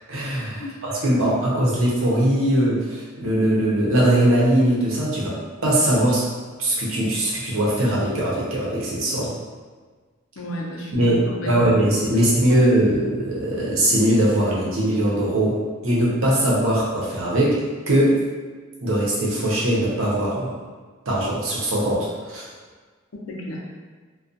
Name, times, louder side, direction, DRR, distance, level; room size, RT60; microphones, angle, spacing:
voice 1, 0.1-5.4 5.6-6.2 6.6-9.3 10.9-17.6 17.9-18.2 18.8-20.5 21.1-22.5, right 1 dB, 85° right, -5 dB, 0.7 m, -21 dB
voice 2, 1.2-1.5 10.4-11.6 23.1-23.6, left 1 dB, 75° left, -3 dB, 0.6 m, -33 dB
2.3 x 2.3 x 2.5 m, 1.5 s
head